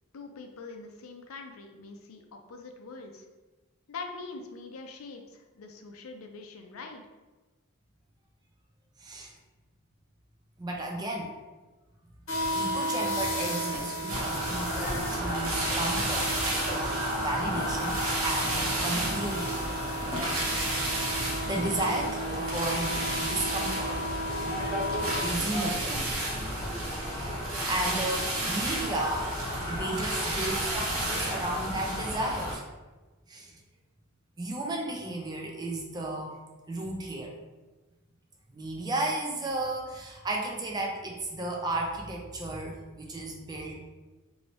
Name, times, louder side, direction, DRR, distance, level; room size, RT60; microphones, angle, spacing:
voice 1, 0.1-3.2 3.9-7.0, left 3 dB, 85° left, 4 dB, 0.5 m, -43 dB
voice 2, 9.0-9.3 10.6-11.3 12.5-16.3 16.8-19.7 21.4-24.2 25.2-26.3 27.0-29.3 29.7-32.6 33.3-33.6 34.4-36.3 36.7-37.4 38.5-43.8, right 1 dB, 20° right, -1 dB, 0.4 m, -34 dB
sound 1, 12.3-25.3, equal, 70° left, 0.8 m, -34 dB
sound 2, 13.7-15.3 16.0-16.6 17.5-18.6 19.4-19.5 20.0-21.1 21.6-22.3 23.7-24.0 25.1-25.3 25.9-26.0 26.4-26.5 26.8-27.0 27.3-27.4 27.8-27.9 28.4-28.5 28.9-29.0 29.8-30.0, left 1 dB, 30° left, 0.7 m, -44 dB
sound 3, 14.1-32.5, right 1 dB, 75° right, 0.9 m, -31 dB
3.1 x 2.7 x 2.9 m, 1.2 s
head